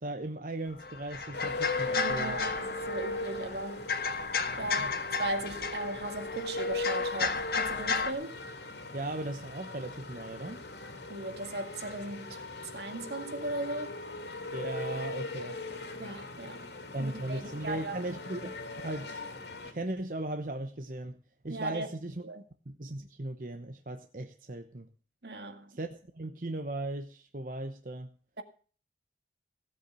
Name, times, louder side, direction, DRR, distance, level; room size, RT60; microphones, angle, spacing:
voice 1, 0.0-2.4 4.6-4.9 8.9-10.6 14.5-15.6 16.9-19.3 19.6-21.2 21.4-22.2 22.6-24.9 25.7-28.1, right 1 dB, 50° right, 1.0 m, -38 dB
sound 1, 0.7-8.1, left 4 dB, 60° left, 1.5 m, -33 dB
sound 2, 1.3-19.7, left 2 dB, 80° left, 3.0 m, -39 dB
voice 2, 1.9-3.9 4.6-4.9 5.2-8.4 11.1-12.5 12.7-14.0 16.0-16.7 17.0-18.0 21.5-21.9 22.2-22.4 25.2-25.8 28.4-28.5, right 2 dB, 75° right, 2.1 m, -37 dB
17.0 x 8.2 x 6.9 m
head